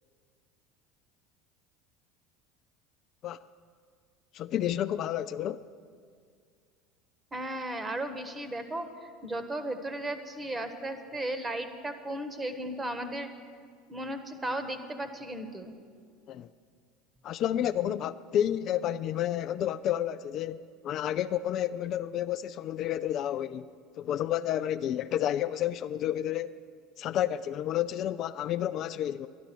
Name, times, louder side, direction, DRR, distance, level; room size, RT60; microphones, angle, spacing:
voice 1, 4.3-5.7 16.3-16.5 17.2-23.7 24.0-26.6 27.0-29.3, left 11 dB, 50° left, 0.3 m, -30 dB
voice 2, 7.3-13.3 13.9-15.7, right 1 dB, 20° right, 1.3 m, -35 dB
12.0 x 11.5 x 6.2 m
hypercardioid pair, 75°, 0 cm